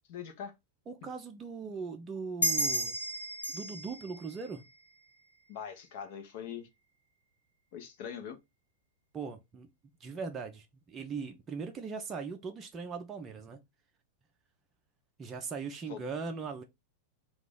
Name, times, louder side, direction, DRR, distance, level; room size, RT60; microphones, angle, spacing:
voice 1, 0.1-0.5 5.5-6.7 7.7-8.4 15.9-16.0, left 8 dB, 50° left, 0.8 m, -42 dB
voice 2, 0.9-3.0 3.5-4.6 9.1-9.7 10.0-13.6 15.2-16.6, right 5 dB, 25° right, 0.5 m, -39 dB
sound 1, 2.4-5.5, right 1 dB, 80° left, 1.0 m, -34 dB
2.9 x 2.4 x 3.7 m
figure-of-eight pair, 90°, 0 cm